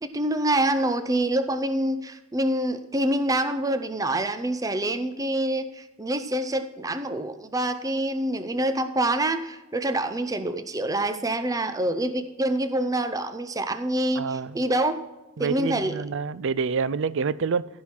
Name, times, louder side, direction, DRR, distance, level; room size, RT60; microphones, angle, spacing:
voice 1, 0.0-15.0 15.4-16.0, right 1 dB, 15° right, 0.6 m, -26 dB
voice 2, 14.2-14.6 15.4-17.7, right 5 dB, 60° right, 0.4 m, -27 dB
15.5 x 5.6 x 4.4 m
head